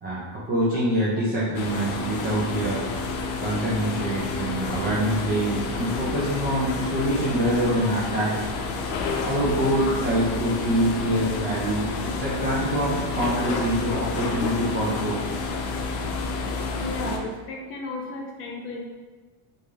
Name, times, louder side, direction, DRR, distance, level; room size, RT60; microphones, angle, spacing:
voice 1, 0.0-2.9 3.4-8.3 9.2-15.2, right 1 dB, 20° right, -7 dB, 0.6 m, -25 dB
sound 1, 1.5-17.2, left 3 dB, 80° left, 0.6 m, -29 dB
voice 2, 16.7-18.9, left 2 dB, 30° left, 0 dB, 0.5 m, -35 dB
3.2 x 2.7 x 3.5 m, 1.3 s
cardioid pair, 165°, 42 cm